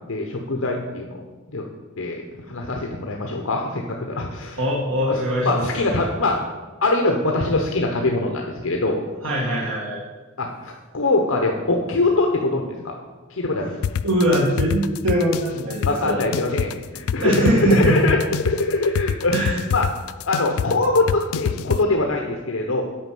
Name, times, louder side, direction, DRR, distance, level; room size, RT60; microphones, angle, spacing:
voice 1, 0.1-1.7 2.0-4.6 5.0-6.4 6.8-9.0 10.4-12.9 13.3-13.7 15.9-18.2 18.4-19.9 20.3-22.8, left 2 dB, 70° left, 2 dB, 1.0 m, -23 dB
voice 2, 4.6-5.7 9.2-10.0 14.0-16.2 17.2-18.0 19.3-19.6, right 1 dB, 80° right, -4 dB, 1.6 m, -21 dB
sound 1, 13.8-21.8, left 8 dB, 85° left, 0.3 m, -26 dB
8.9 x 5.3 x 7.6 m, 1.3 s
head